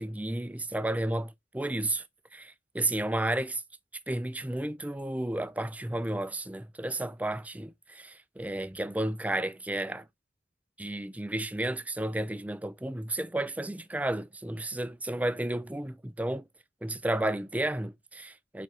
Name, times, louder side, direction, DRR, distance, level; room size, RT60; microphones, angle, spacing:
voice 1, 0.0-2.0 2.3-3.6 4.1-10.1 10.8-16.5 16.8-18.6, right 1 dB, 10° right, 0.4 m, -32 dB
5.3 x 5.3 x 3.6 m
head